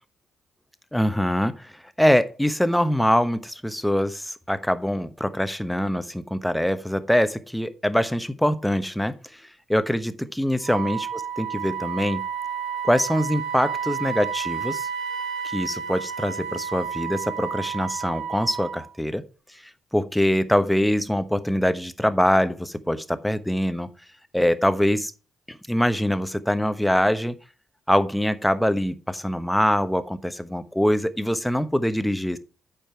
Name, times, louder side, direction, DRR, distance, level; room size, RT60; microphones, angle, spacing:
voice 1, 0.9-1.7 2.0-9.1 9.7-12.3 12.8-14.9 15.4-19.2 19.9-23.9 24.3-25.1 25.5-27.4 27.9-32.4, equal, 5° left, 11 dB, 1.1 m, -23 dB
Wind instrument woodwind instrument, 10.6-18.9, right 7 dB, 65° right, 1.1 m, -31 dB
8.9 x 5.3 x 4.6 m, 0.35 s
hypercardioid pair, 45°, 0 cm